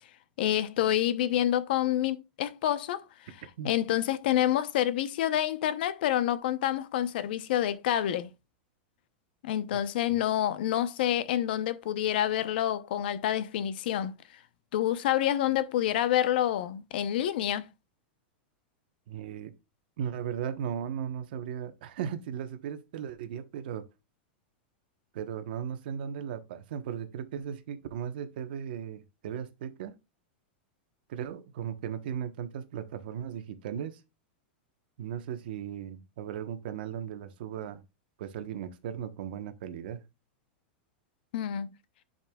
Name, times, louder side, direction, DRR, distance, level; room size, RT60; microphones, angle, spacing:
voice 1, 0.4-3.0 3.6-8.3 9.4-14.1 14.7-17.7 41.3-41.7, left 11 dB, 65° left, 0.8 m, -28 dB
voice 2, 19.1-19.5 20.0-23.9 25.1-30.0 31.1-34.0 35.0-37.8 38.2-40.0, right 8 dB, 65° right, 1.1 m, -37 dB
10.0 x 5.4 x 2.3 m
supercardioid pair, 165°, 6 cm